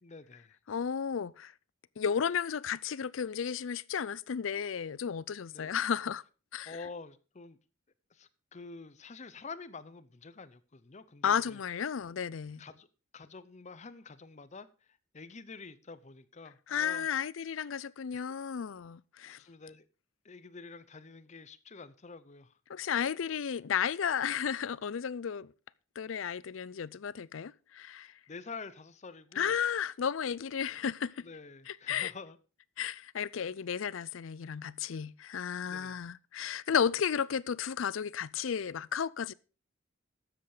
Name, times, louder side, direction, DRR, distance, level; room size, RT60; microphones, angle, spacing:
voice 1, 0.0-0.6 5.5-5.7 6.6-7.6 8.1-11.6 12.6-12.9 13.1-14.7 15.1-17.1 18.1-18.2 19.3-19.8 20.2-22.5 28.0-29.6 31.2-32.4 35.7-36.0, left 4 dB, 35° left, 0.7 m, -48 dB
voice 2, 0.7-1.5 2.0-6.2 6.5-6.8 11.2-12.6 16.7-19.4 22.7-25.5 26.0-28.1 29.4-31.3 31.7-32.1 32.8-39.3, left 7 dB, 75° left, 0.5 m, -33 dB
12.5 x 7.9 x 4.9 m
head